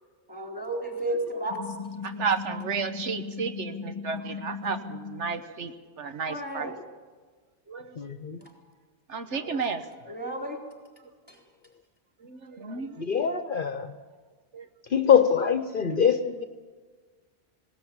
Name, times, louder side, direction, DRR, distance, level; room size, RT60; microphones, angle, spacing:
voice 1, 0.3-1.6 6.3-6.7 8.4-8.5 10.1-10.6 11.3-11.4, right 1 dB, 10° right, 1 dB, 4.1 m, -32 dB
sound 1, 1.5-5.4, left 5 dB, 30° left, 1.3 m, -38 dB
voice 2, 2.0-6.8 7.7-8.0 9.1-10.1 12.2-13.1 14.5-14.7, right 5 dB, 85° right, 8 dB, 1.5 m, -33 dB
voice 3, 8.0-8.4 13.0-13.9 14.9-16.4, left 7 dB, 50° left, 10 dB, 0.9 m, -23 dB
19.5 x 18.0 x 8.7 m, 1.5 s
omnidirectional pair, 1.2 m